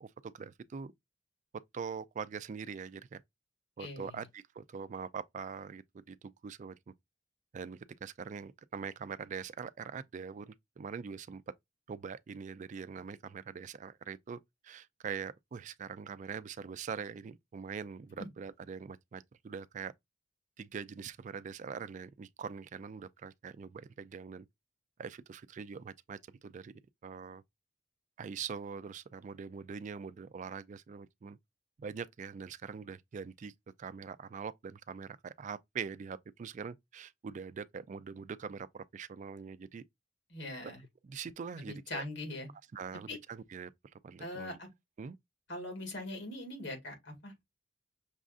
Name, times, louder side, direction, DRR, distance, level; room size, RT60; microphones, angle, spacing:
voice 1, 0.0-0.9 1.7-3.2 3.8-6.8 7.5-11.4 11.9-19.9 20.6-24.5 25.0-26.7 27.0-27.4 28.2-31.4 31.8-33.5 33.8-39.8 40.6-40.7 41.0-42.0 42.7-43.7 44.0-44.6 45.0-45.2, right 6 dB, 40° right, 0.3 m, -43 dB
voice 2, 3.8-4.2 40.3-40.8 41.6-42.5 43.1-43.2 44.2-44.7 45.5-47.4, left 1 dB, 85° left, 2.0 m, -41 dB
6.1 x 2.5 x 2.4 m
head